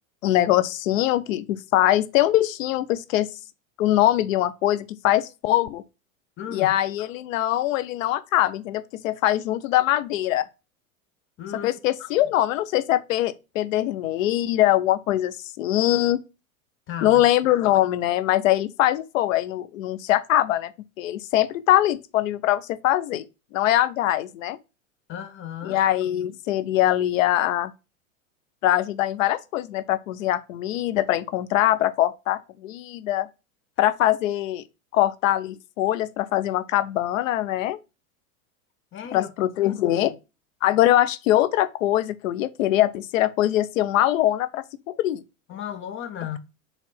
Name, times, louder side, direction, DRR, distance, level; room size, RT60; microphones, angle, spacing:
voice 1, 0.2-3.3 3.8-5.8 6.5-10.4 11.6-16.2 17.0-20.7 21.0-23.2 23.5-24.6 25.6-27.7 28.6-33.3 33.8-34.6 34.9-37.8 39.1-40.1 40.6-44.6 45.0-45.2, left 13 dB, 70° left, 0.7 m, -22 dB
voice 2, 6.4-6.8 11.4-11.7 16.9-17.2 25.1-25.8 38.9-40.2 45.5-46.4, left 9 dB, 30° left, 0.7 m, -35 dB
5.0 x 3.4 x 5.5 m
hypercardioid pair, 100°, 41 cm